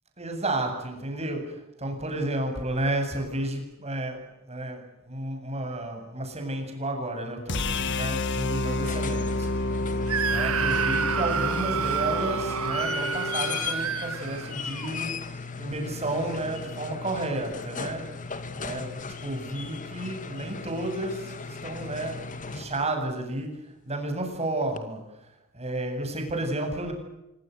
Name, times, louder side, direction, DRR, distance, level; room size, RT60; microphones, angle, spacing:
voice 1, 0.2-7.6 7.9-9.5 10.3-15.1 15.6-18.1 18.5-23.5 23.9-25.0 25.5-26.9, right 1 dB, 30° right, 4 dB, 7.8 m, -32 dB
sound 1, 7.5-13.6, left 2 dB, 55° left, 1.8 m, -30 dB
sound 2, 8.6-23.0 24.8-24.9, left 5 dB, 35° left, 2.4 m, -37 dB
Screaming, 10.1-14.9, right 7 dB, 75° right, 1.4 m, -29 dB
26.0 x 23.5 x 8.1 m, 0.91 s
head